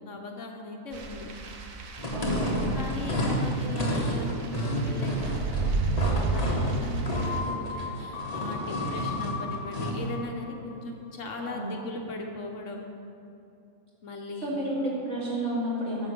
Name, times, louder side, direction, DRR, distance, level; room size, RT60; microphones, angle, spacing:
voice 1, 0.1-1.3 2.3-2.5 2.7-12.9 14.0-14.5, left 2 dB, 65° left, 2 dB, 1.2 m, -39 dB
sound 1, 0.9-7.4, right 3 dB, 75° right, 1.2 m, -32 dB
sound 2, 2.0-10.1, equal, 30° left, 1.2 m, -30 dB
voice 2, 2.1-2.7 11.4-11.7 14.4-16.1, right 1 dB, 50° right, -7 dB, 3.0 m, -31 dB
sound 3, 7.1-10.9 11.2-11.3, left 4 dB, 80° left, 1.3 m, -37 dB
9.6 x 7.4 x 5.2 m, 2.7 s
omnidirectional pair, 1.5 m